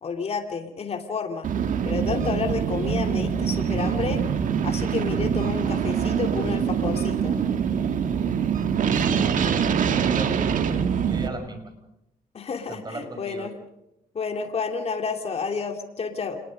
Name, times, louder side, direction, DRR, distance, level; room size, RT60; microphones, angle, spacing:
voice 1, 0.0-1.5 1.8-4.2 4.6-7.4 12.3-13.5 14.1-16.4, left 5 dB, 45° left, 4 dB, 2.9 m, -30 dB
sound 1, 1.4-11.3, right 7 dB, 65° right, 1.9 m, -24 dB
voice 2, 9.1-11.7 12.7-13.5, right 2 dB, 30° right, 5 dB, 6.5 m, -37 dB
27.5 x 21.0 x 5.3 m, 0.87 s
cardioid pair, 95°, 15 cm